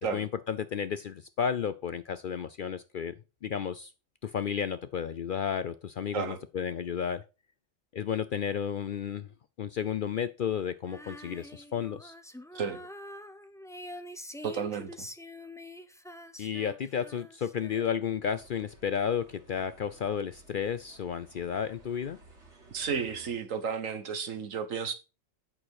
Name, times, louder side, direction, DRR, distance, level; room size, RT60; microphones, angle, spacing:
voice 1, 0.1-3.9 4.2-7.2 7.9-9.3 9.6-12.1 16.4-22.2, left 7 dB, 60° left, 0.5 m, -32 dB
Female singing, 10.8-18.2, left 1 dB, 5° left, 0.3 m, -46 dB
voice 2, 14.4-15.1 22.7-24.9, right 6 dB, 85° right, 1.6 m, -33 dB
sound 1, 18.2-23.3, right 3 dB, 60° right, 2.5 m, -56 dB
8.8 x 6.2 x 4.7 m
omnidirectional pair, 1.3 m